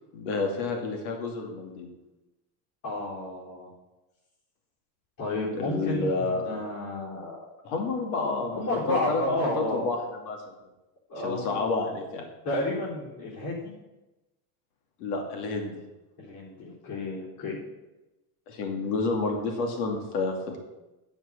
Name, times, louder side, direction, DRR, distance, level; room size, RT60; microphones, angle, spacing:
voice 1, 0.1-1.9 5.5-6.4 7.6-9.2 9.6-10.5 11.2-12.2 15.0-15.7 18.5-20.6, left 3 dB, 85° left, 3 dB, 2.6 m, -29 dB
voice 2, 2.8-3.7 5.2-7.5 8.5-9.8 11.1-11.6 12.4-13.7 16.2-17.6, left 1 dB, 50° left, -6 dB, 4.2 m, -31 dB
10.5 x 7.2 x 7.0 m, 1.0 s
cardioid pair, 140°, 44 cm